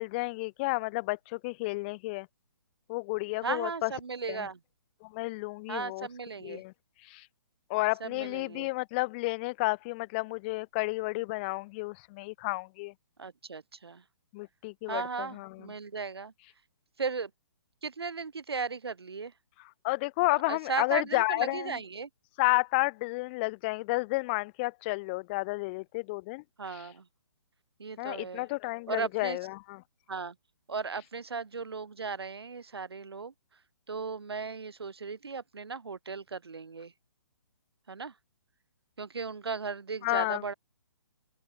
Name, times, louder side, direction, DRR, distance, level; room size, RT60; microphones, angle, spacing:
voice 1, 0.0-2.3 2.9-3.9 4.3-4.4 5.0-6.1 6.4-6.7 7.1-7.3 7.7-12.9 14.3-15.5 19.8-21.8 22.4-26.4 28.0-29.8 40.0-40.4, left 24 dB, 25° left, 0.5 m, -31 dB
voice 2, 3.4-4.6 5.7-6.6 8.0-8.7 13.2-14.0 14.9-16.3 17.0-17.3 17.8-19.3 20.5-22.1 26.6-27.1 27.8-28.5 28.9-29.4 30.1-30.3 30.7-33.3 33.9-36.9 37.9-38.1 39.0-40.5, right 5 dB, 70° right, 2.6 m, -36 dB
open air
figure-of-eight pair, 135°, 13 cm